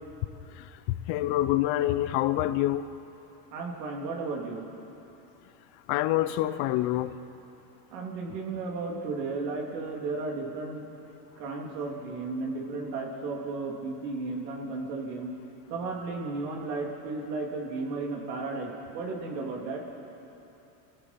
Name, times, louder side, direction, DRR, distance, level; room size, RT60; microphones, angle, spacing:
voice 1, 1.1-2.9 5.9-7.2, left 14 dB, 65° left, 13 dB, 1.0 m, -26 dB
voice 2, 3.5-4.6 7.9-10.9 11.4-15.3 15.7-19.8, right 3 dB, 85° right, 0 dB, 3.4 m, -34 dB
27.5 x 16.0 x 6.0 m, 3.0 s
supercardioid pair, 110°, 48 cm